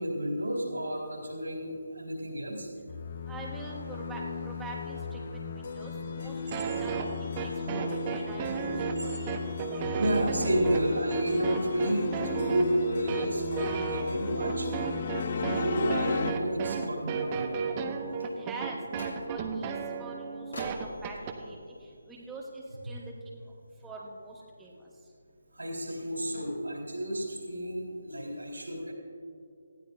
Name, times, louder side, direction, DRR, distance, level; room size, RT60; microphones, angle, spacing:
voice 1, 0.0-2.7 6.2-6.3 6.6-6.7 9.0-9.2 10.0-14.7 15.3-17.5 22.9-23.0 25.5-28.9, equal, 80° right, -1 dB, 3.8 m, -31 dB
sound 1, 2.9-16.3, left 2 dB, 45° left, 0.7 m, -35 dB
voice 2, 3.3-7.0 7.3-9.1 9.7-9.8 18.4-19.7 20.0-21.6 22.1-23.0 23.3-23.4 23.8-24.7, right 2 dB, 5° right, -3 dB, 1.2 m, -44 dB
sound 2, 6.5-21.4, right 6 dB, 25° right, 0.9 m, -34 dB
sound 3, 18.9-19.6 20.5-22.8, left 2 dB, 70° left, 2.6 m, -47 dB
19.0 x 14.5 x 2.7 m, 2.5 s
figure-of-eight pair, 150°, 0 cm